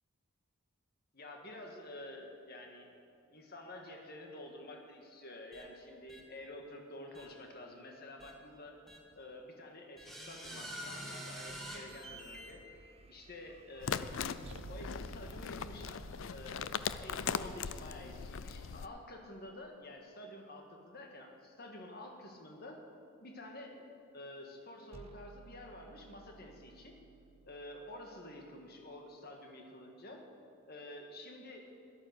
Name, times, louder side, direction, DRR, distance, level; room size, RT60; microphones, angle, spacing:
voice 1, 1.1-2.9 3.3-8.8 9.1-12.6 13.1-14.1 14.7-22.8 23.2-23.8 24.1-26.9 27.4-30.2 30.6-31.7, left 1 dB, 45° left, 2 dB, 1.6 m, -49 dB
sound 1, 5.5-5.6 6.1-6.2 7.1-7.3 8.2-8.3 8.9-9.0 10.0-12.5, equal, ahead, 1.7 m, -46 dB
sound 2, 11.5-18.7 24.9-29.0, right 3 dB, 25° right, 0.4 m, -56 dB
sound 3, 13.8-18.9, left 7 dB, 60° left, 0.4 m, -39 dB
13.5 x 11.5 x 6.5 m, 2.5 s
head